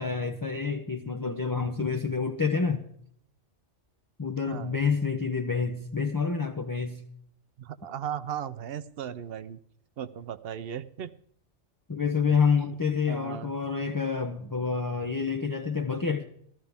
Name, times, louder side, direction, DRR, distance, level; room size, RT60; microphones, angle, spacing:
voice 1, 0.0-2.9 4.2-7.0 11.9-16.3, left 5 dB, 20° left, 0.6 m, -28 dB
voice 2, 4.5-4.8 7.6-9.6 10.0-11.1 12.3-12.4 13.1-13.5, right 9 dB, 60° right, 0.8 m, -36 dB
14.5 x 13.0 x 3.5 m
omnidirectional pair, 1.2 m